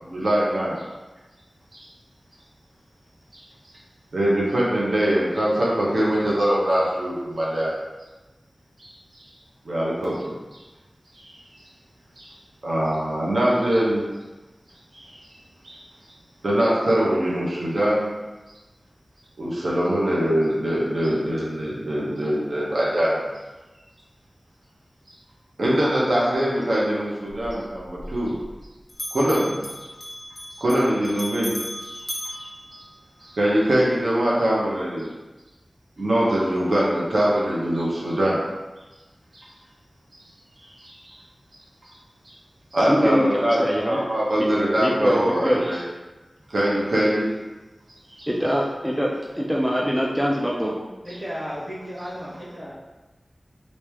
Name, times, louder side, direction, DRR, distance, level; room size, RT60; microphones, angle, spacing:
voice 1, 0.0-0.8 1.7-1.8 3.3-3.4 4.1-7.7 8.8-8.9 9.6-10.3 11.2-11.4 12.2-12.3 12.6-14.1 14.9-15.2 15.6-15.8 16.4-18.1 19.4-23.2 25.6-28.3 29.1-29.6 30.6-31.5 32.2-32.5 33.3-35.1 36.0-38.4 39.3-39.4 40.8-41.2 42.7-45.8 46.5-47.3 48.2-48.3, right 1 dB, 85° right, -6 dB, 0.9 m, -22 dB
Bell, 27.3-28.6 28.9-33.4, equal, 40° left, 0.8 m, -37 dB
voice 2, 42.9-44.0 44.4-44.5 44.8-45.8 48.3-50.7, equal, 5° right, -3 dB, 0.4 m, -24 dB
voice 3, 51.0-52.8, equal, 30° right, -7 dB, 1.2 m, -34 dB
3.1 x 2.7 x 3.4 m, 1.1 s
wide cardioid pair, 75°, 0 cm